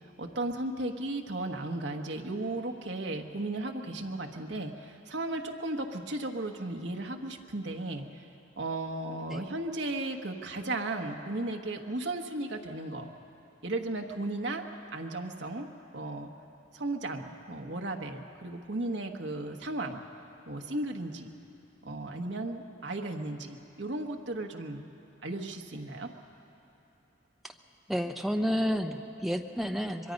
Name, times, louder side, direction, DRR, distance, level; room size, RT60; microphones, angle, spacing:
voice 1, 0.2-8.1 8.6-13.1 13.6-14.6 14.9-15.7 15.9-16.3 16.7-20.0 20.5-21.3 21.8-24.8 25.2-26.1, right 2 dB, 60° right, 2 dB, 1.3 m, -35 dB
voice 2, 27.9-30.1, equal, ahead, 4 dB, 0.7 m, -30 dB
24.0 x 22.5 x 5.3 m, 2.9 s
head